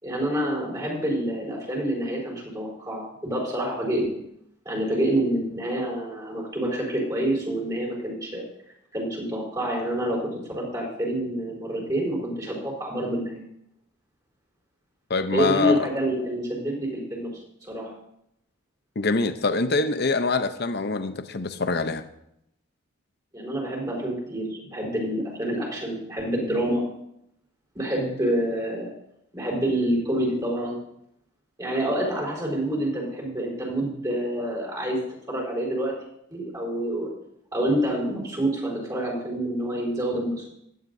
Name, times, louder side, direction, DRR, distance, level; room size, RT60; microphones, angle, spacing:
voice 1, 0.0-4.1 4.6-8.4 8.9-13.4 15.3-17.3 17.6-17.9 23.3-26.8 27.7-28.9 29.3-30.8 31.6-35.0 35.3-35.9 36.3-37.1 37.5-40.5, right 1 dB, 20° right, -3 dB, 4.6 m, -27 dB
voice 2, 15.1-15.9 19.0-22.0, left 3 dB, 50° left, 9 dB, 0.8 m, -24 dB
16.5 x 12.0 x 2.7 m, 0.76 s
head